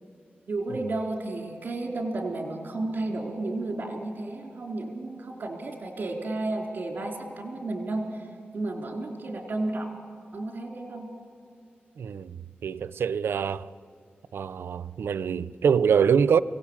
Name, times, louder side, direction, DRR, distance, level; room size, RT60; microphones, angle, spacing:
voice 1, 0.5-8.3 8.5-9.9 10.3-11.1, right 2 dB, 50° right, 3.8 m, -32 dB
voice 2, 12.0-12.4 12.6-13.7 14.3-16.4, right 7 dB, 85° right, 0.6 m, -24 dB
24.5 x 17.5 x 8.8 m
wide cardioid pair, 105°, 4 cm